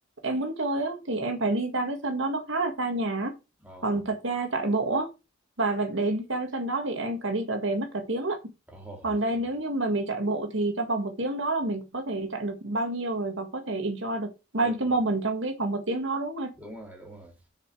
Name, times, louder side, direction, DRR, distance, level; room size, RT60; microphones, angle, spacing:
voice 1, 0.2-3.3 3.8-5.1 5.6-8.5 9.0-16.5, right 2 dB, 70° right, 1.8 m, -28 dB
voice 2, 3.6-4.0 8.7-9.2 14.6-15.0 16.6-17.3, right 1 dB, 10° right, 2.9 m, -44 dB
6.9 x 5.2 x 6.2 m
head